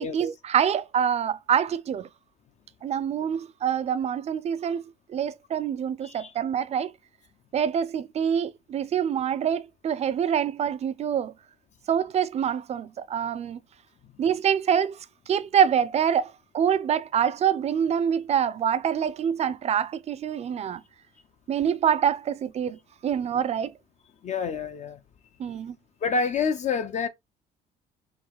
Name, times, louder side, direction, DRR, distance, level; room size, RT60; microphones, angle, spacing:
voice 1, 0.0-2.1 2.8-4.8 5.1-6.9 7.5-11.3 11.9-13.6 14.2-15.0 15.3-20.8 21.5-23.8 25.4-25.7, right 8 dB, 40° right, 0.5 m, -25 dB
voice 2, 24.2-25.0 26.0-27.1, left 5 dB, 45° left, 0.5 m, -27 dB
3.9 x 2.3 x 4.5 m
cardioid pair, 110°, 17 cm